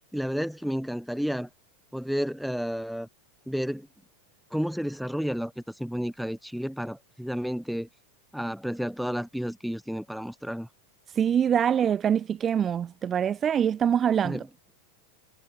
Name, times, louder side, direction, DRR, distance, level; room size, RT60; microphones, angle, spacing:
voice 1, 0.1-1.5 1.9-3.1 3.5-3.9 4.5-7.9 8.3-10.7 14.2-14.5, equal, ahead, 2.9 m, -31 dB
voice 2, 11.2-14.4, right 8 dB, 25° right, 2.8 m, -24 dB
figure-of-eight pair, 90°, 0 cm